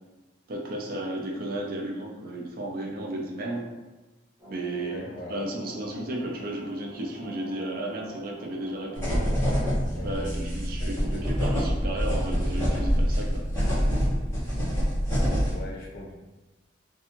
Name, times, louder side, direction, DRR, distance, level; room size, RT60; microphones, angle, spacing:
voice 1, 0.5-3.7 4.4-5.0 5.3-9.2 10.0-13.3, right 1 dB, 50° right, 0 dB, 0.4 m, -33 dB
sound 1, 4.4-9.7, equal, 10° right, 0.7 m, -45 dB
voice 2, 4.8-5.4 9.9-10.2 10.8-11.2 15.5-16.1, left 1 dB, 55° left, -2 dB, 0.5 m, -40 dB
sound 2, 8.9-15.6, equal, 15° left, 1.0 m, -26 dB
2.5 x 2.3 x 2.9 m, 1.1 s
head